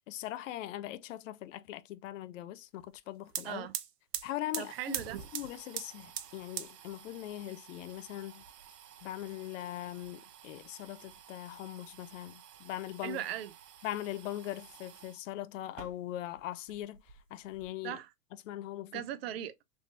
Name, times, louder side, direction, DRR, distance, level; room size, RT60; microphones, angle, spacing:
voice 1, 0.1-3.7 4.2-4.7 5.3-8.4 9.0-13.2 13.8-17.0 17.3-18.0 18.5-19.0, left 13 dB, 55° left, 0.5 m, -41 dB
sound 1, 2.9-3.0 3.2-15.2 15.6-16.4 16.7-17.7, right 10 dB, 75° right, 0.8 m, -45 dB
voice 2, 4.6-5.2 13.0-13.5 17.8-18.1 18.9-19.6, right 11 dB, 40° right, 0.5 m, -38 dB
3.4 x 3.2 x 2.6 m
hypercardioid pair, 135°, 48 cm